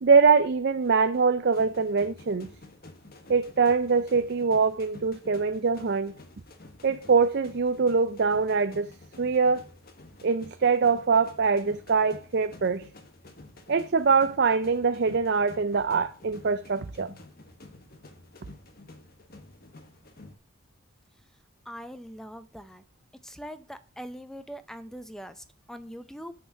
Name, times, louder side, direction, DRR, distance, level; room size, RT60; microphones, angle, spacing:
voice 1, 0.0-2.5 3.3-6.1 6.8-8.9 9.2-9.7 10.2-12.8 13.7-17.1, right 5 dB, 50° right, 0.4 m, -23 dB
sound 1, 0.8-20.4, left 2 dB, 45° left, 1.3 m, -50 dB
voice 2, 21.7-22.8 23.2-26.3, equal, ahead, 0.6 m, -42 dB
6.8 x 6.5 x 5.8 m
head